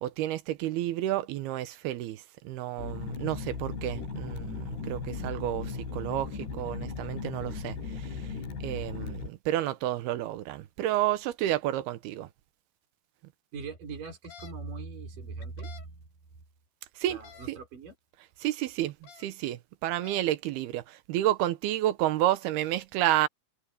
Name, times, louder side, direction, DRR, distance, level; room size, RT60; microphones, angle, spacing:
voice 1, 0.0-8.1 8.6-12.3 17.0-17.2 17.5-17.6 18.4-18.9 19.2-23.3, right 13 dB, 75° right, 2.9 m, -30 dB
sound 1, 2.8-9.3, left 5 dB, 85° left, 8.5 m, -37 dB
voice 2, 13.5-16.0 17.1-17.9, right 4 dB, 55° right, 6.7 m, -40 dB
sound 2, 14.0-14.5 15.4-15.9 17.1-17.5 18.9-19.2 19.8-20.3, left 8 dB, 65° left, 4.7 m, -50 dB
omnidirectional pair, 4.7 m